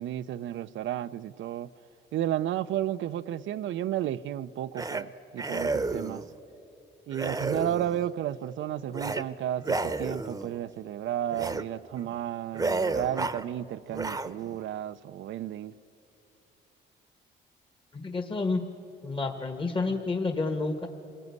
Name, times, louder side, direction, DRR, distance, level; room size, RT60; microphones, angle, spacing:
voice 1, 0.0-1.7 2.1-6.2 7.1-15.7, right 12 dB, 75° right, 13 dB, 0.6 m, -33 dB
sound 1, 4.7-5.0 5.4-6.3 7.1-8.1 8.9-9.2 9.6-10.5 11.3-11.6 12.0-12.2 12.5-13.4 13.9-14.6, right 3 dB, 15° right, 1.0 m, -31 dB
voice 2, 17.9-18.6 19.0-20.9, left 3 dB, 25° left, 5 dB, 1.4 m, -29 dB
27.5 x 19.0 x 9.6 m, 2.9 s
cardioid pair, 90°, 20 cm